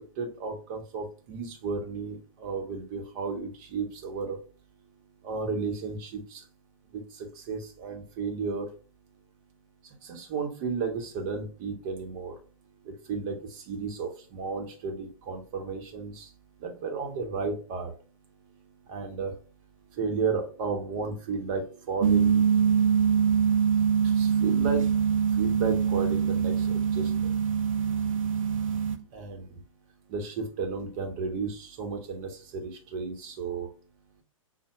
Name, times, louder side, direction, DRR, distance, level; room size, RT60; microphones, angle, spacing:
voice 1, 0.2-4.4 5.2-6.4 6.9-7.0 7.5-8.7 10.1-12.3 13.1-13.4 13.7-16.2 16.6-17.9 18.9-19.3 20.0-22.4 24.2-24.8 25.4-26.5 27.0-27.3 29.1-29.4 30.1-33.7, right 4 dB, 35° right, 4 dB, 0.8 m, -33 dB
sound 1, 22.0-29.0, right 7 dB, 75° right, 0.5 m, -24 dB
5.4 x 2.1 x 3.0 m, 0.37 s
figure-of-eight pair, 115°, 17 cm